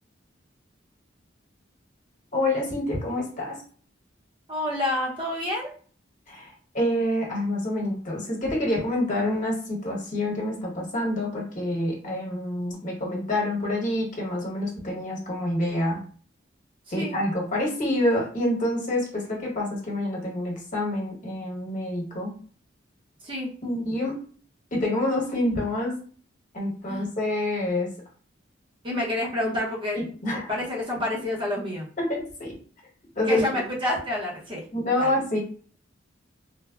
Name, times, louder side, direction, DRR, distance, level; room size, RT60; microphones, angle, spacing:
voice 1, 2.3-3.6 6.3-16.0 16.9-22.3 23.6-24.2 24.7-26.0 26.5-27.9 29.9-30.5 32.0-32.6 33.2-33.4 34.7-35.4, left 1 dB, 45° left, -2 dB, 1.0 m, -27 dB
voice 2, 4.5-5.7 16.9-17.2 23.2-23.5 26.9-27.1 28.8-30.0 30.5-31.9 33.3-34.6 35.0-35.1, left 1 dB, 25° right, -3 dB, 0.7 m, -28 dB
3.2 x 2.0 x 2.3 m, 0.43 s
head